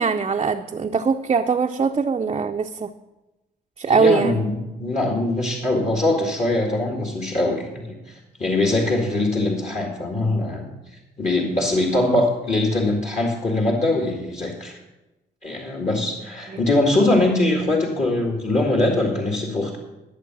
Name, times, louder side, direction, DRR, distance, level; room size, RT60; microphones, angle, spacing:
voice 1, 0.0-2.9 3.8-4.4 16.5-16.6, right 5 dB, 30° right, 4 dB, 0.5 m, -21 dB
voice 2, 3.9-10.7 11.2-14.7 15.4-19.8, left 2 dB, 40° left, 1 dB, 2.0 m, -22 dB
12.5 x 6.8 x 6.0 m, 1.0 s
supercardioid pair, 60°, 19 cm